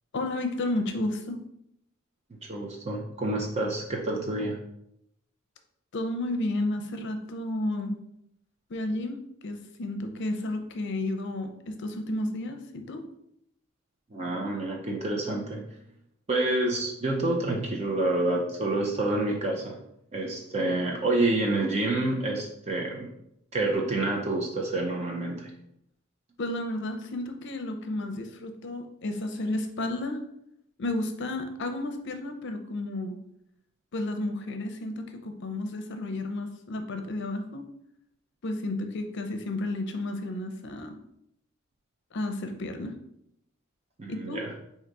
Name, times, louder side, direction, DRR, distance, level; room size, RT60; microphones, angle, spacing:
voice 1, 0.1-1.4 5.9-8.0 8.7-13.0 26.4-30.2 30.8-33.2 33.9-37.7 38.4-41.0 42.1-43.0 44.1-44.4, left 2 dB, 60° left, 6 dB, 0.6 m, -32 dB
voice 2, 2.3-4.6 14.1-15.6 16.3-19.8 20.1-23.1 23.5-25.5 44.0-44.5, right 2 dB, 30° right, 0 dB, 0.6 m, -28 dB
3.9 x 2.7 x 4.6 m, 0.77 s
head